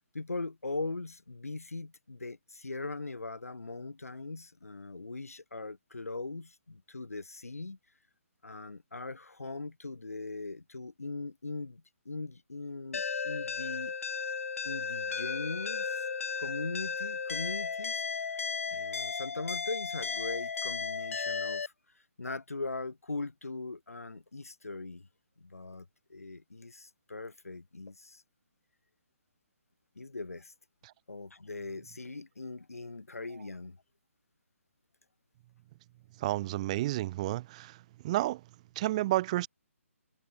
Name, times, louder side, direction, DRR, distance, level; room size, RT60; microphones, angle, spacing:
voice 1, 0.1-7.8 8.4-13.9 14.6-16.1 16.4-18.0 18.7-21.7 22.2-25.1 25.4-28.2 30.0-30.5 31.1-33.8, left 3 dB, 85° left, 5.8 m, -40 dB
sound 1, 12.9-21.7, left 5 dB, 70° left, 1.0 m, -35 dB
voice 2, 36.2-37.8 38.0-38.4 38.8-39.5, right 16 dB, 30° right, 0.5 m, -30 dB
figure-of-eight pair, 145°, 8 cm